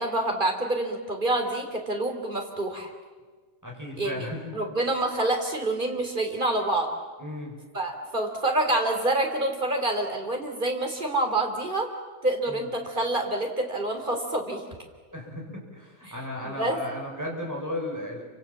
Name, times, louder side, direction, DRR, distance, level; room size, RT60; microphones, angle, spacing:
voice 1, 0.0-2.9 4.0-4.3 4.5-6.9 7.7-11.9 12.2-14.6 16.1-16.2 16.4-16.8, right 2 dB, 35° right, 3 dB, 4.0 m, -27 dB
voice 2, 3.6-4.6 7.2-7.6 12.5-12.6 15.1-18.2, left 1 dB, 10° right, -1 dB, 6.9 m, -35 dB
28.5 x 26.5 x 7.5 m, 1.4 s
omnidirectional pair, 1.5 m